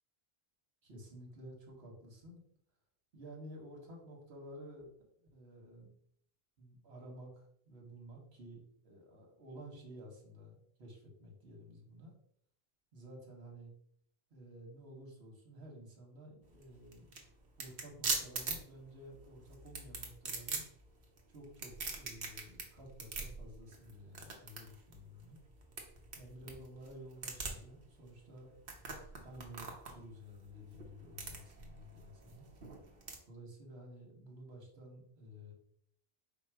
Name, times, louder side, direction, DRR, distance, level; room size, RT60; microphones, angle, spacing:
voice 1, 0.8-2.4 3.1-4.9 5.3-5.9 6.6-12.1 12.9-13.7 14.3-17.1 17.6-20.6 21.3-25.4 26.1-28.5 29.2-32.5 33.3-35.5, equal, 80° right, 0 dB, 1.5 m, -52 dB
sound 1, 16.4-33.2, right 4 dB, 65° right, 1.1 m, -43 dB
5.2 x 2.0 x 4.6 m, 0.64 s
omnidirectional pair, 1.0 m